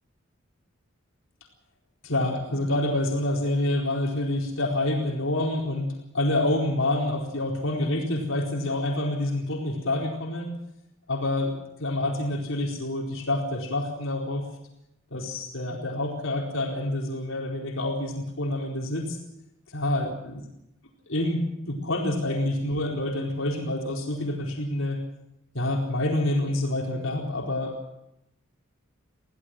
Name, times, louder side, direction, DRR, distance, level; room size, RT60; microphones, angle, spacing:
voice 1, 2.0-10.5 11.1-14.4 15.1-19.2 19.7-20.4 21.1-25.0 25.5-27.8, left 1 dB, 80° left, 0 dB, 4.3 m, -27 dB
23.0 x 16.5 x 7.8 m, 0.84 s
head